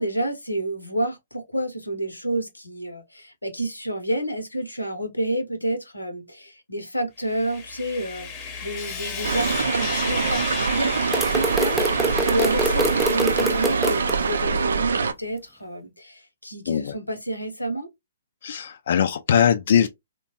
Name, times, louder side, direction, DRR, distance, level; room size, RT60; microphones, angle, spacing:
voice 1, 0.0-17.9, right 1 dB, 90° left, 0.8 m, -29 dB
Sawing, 7.2-14.7, left 5 dB, 30° left, 0.8 m, -34 dB
sound 1, 9.2-15.1, right 5 dB, 70° right, 0.4 m, -24 dB
sound 2, 11.1-14.1, right 1 dB, 5° right, 0.4 m, -25 dB
voice 2, 18.4-19.9, left 8 dB, 55° left, 0.4 m, -21 dB
2.9 x 2.2 x 2.7 m
figure-of-eight pair, 125°, 0 cm